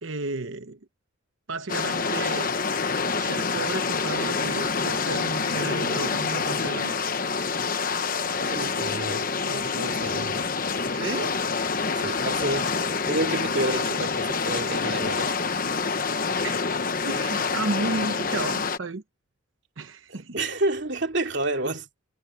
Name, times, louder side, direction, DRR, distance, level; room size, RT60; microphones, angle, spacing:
voice 1, 0.0-0.8 1.5-2.5 3.1-7.0 10.9-11.4 16.4-16.8 17.0-19.0 19.8-20.4, right 3 dB, 75° right, 1.0 m, -33 dB
sound 1, 1.7-18.8, left 5 dB, 45° left, 1.1 m, -27 dB
voice 2, 8.4-10.5 11.9-12.8 13.1-15.3 20.1-21.9, right 2 dB, 60° right, 2.8 m, -29 dB
head